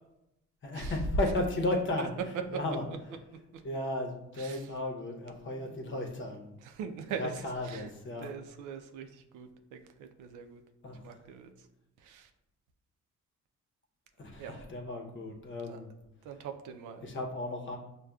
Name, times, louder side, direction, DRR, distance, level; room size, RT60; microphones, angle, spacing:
voice 1, 0.6-2.1 2.5-2.9 3.6-6.5 7.2-8.3 10.8-11.0 14.2-15.9 17.0-17.8, left 1 dB, 40° left, 2 dB, 0.8 m, -34 dB
voice 2, 4.4-4.7 5.4-5.9 6.6-7.9 8.2-10.6 11.0-11.5 12.0-12.3 14.4-14.5 15.7-15.8 16.2-17.0, right 7 dB, 85° right, 6 dB, 0.5 m, -43 dB
6.3 x 2.2 x 2.3 m, 0.89 s
cardioid pair, 90°, 30 cm